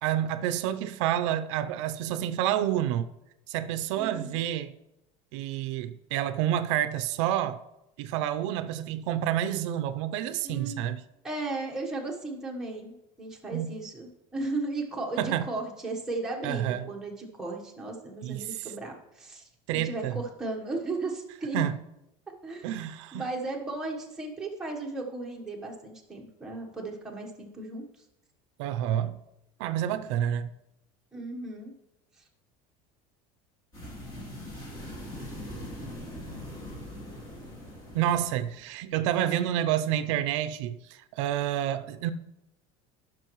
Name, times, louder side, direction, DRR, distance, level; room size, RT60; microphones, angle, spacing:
voice 1, 0.0-3.1 3.5-4.7 5.3-7.6 8.0-11.0 13.5-13.7 15.2-15.5 16.4-16.9 18.2-18.7 19.7-20.2 21.5-21.8 22.6-23.2 28.6-29.2 29.6-30.5 37.9-42.1, right 11 dB, 85° right, 0.5 m, -29 dB
voice 2, 4.0-4.4 10.4-10.8 11.2-21.6 22.4-22.8 23.1-27.9 31.1-31.7, right 2 dB, 5° right, 1.1 m, -35 dB
sound 1, 33.7-38.7, left 1 dB, 25° left, 2.0 m, -41 dB
14.5 x 6.1 x 3.1 m
cardioid pair, 175°, 15 cm